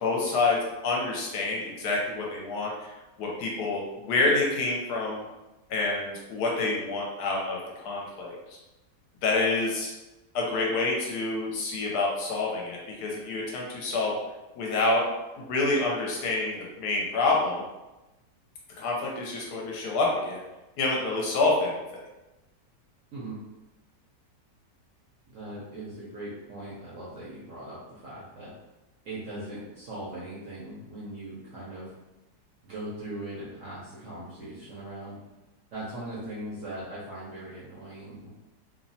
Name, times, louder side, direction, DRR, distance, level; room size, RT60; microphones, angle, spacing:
voice 1, 0.0-5.2 5.7-8.6 9.2-9.9 10.3-14.1 14.5-15.1 15.4-17.6 18.8-20.4 20.8-21.8, left 3 dB, 75° left, -2 dB, 1.1 m, -27 dB
voice 2, 25.3-28.5 29.0-31.9 32.6-35.2 35.7-38.3, right 1 dB, 65° right, -7 dB, 0.8 m, -39 dB
3.0 x 2.0 x 2.6 m, 1.0 s
omnidirectional pair, 1.9 m